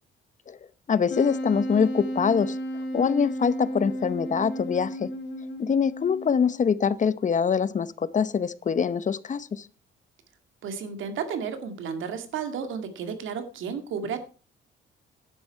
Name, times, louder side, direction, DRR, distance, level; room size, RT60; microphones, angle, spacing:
voice 1, 0.9-2.6 2.9-5.1 5.6-9.7, left 6 dB, 40° left, 17 dB, 0.8 m, -24 dB
Wind instrument woodwind instrument, 1.1-6.8, equal, 60° left, 2.8 m, -33 dB
voice 2, 10.6-14.2, right 6 dB, 80° right, 8 dB, 2.1 m, -32 dB
11.0 x 9.5 x 4.7 m, 0.36 s
cardioid pair, 90°, 20 cm